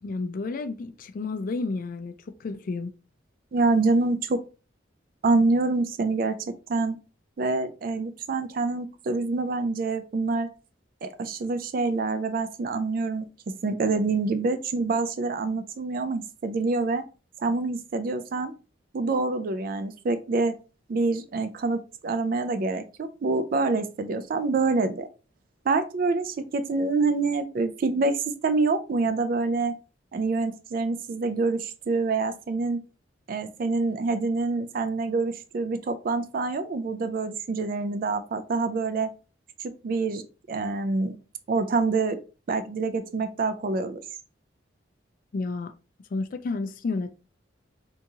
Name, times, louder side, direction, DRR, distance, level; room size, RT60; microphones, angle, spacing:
voice 1, 0.0-2.9 45.3-45.7 46.1-47.1, left 3 dB, 45° left, 0.3 m, -31 dB
voice 2, 3.5-4.4 5.2-6.4 6.7-7.0 7.4-10.5 11.0-13.2 13.6-17.0 17.4-18.5 18.9-20.5 20.9-25.1 25.7-29.7 30.1-32.8 33.3-39.1 39.8-40.2 40.5-41.2 41.5-42.2 42.5-44.0, right 3 dB, 50° right, 0.3 m, -26 dB
3.5 x 2.9 x 2.7 m
head